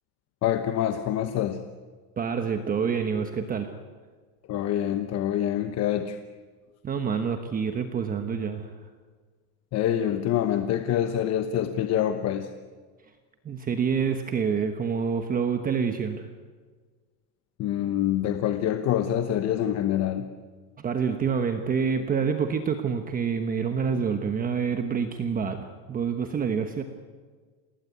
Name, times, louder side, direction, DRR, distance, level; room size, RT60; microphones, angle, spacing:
voice 1, 0.4-1.6 4.5-6.2 9.7-12.5 17.6-20.3, left 11 dB, 30° left, 8 dB, 1.1 m, -26 dB
voice 2, 2.2-3.7 6.8-8.7 13.4-16.3 20.8-26.8, right 6 dB, 20° right, 6 dB, 1.2 m, -27 dB
28.0 x 19.5 x 9.3 m, 1.5 s
cardioid pair, 175°, 48 cm